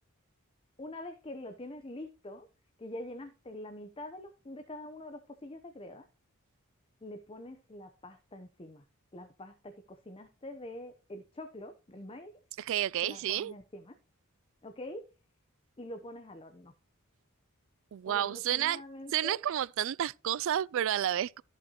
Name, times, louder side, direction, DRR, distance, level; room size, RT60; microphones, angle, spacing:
voice 1, 0.8-2.5 2.8-6.1 7.0-8.8 9.1-12.3 13.0-14.0 14.6-15.0 15.8-16.7 18.1-19.4, left 1 dB, 25° left, 0.8 m, -45 dB
voice 2, 12.6-13.5 17.9-18.8 19.1-21.4, right 11 dB, 60° right, 0.3 m, -30 dB
13.5 x 5.8 x 2.9 m
head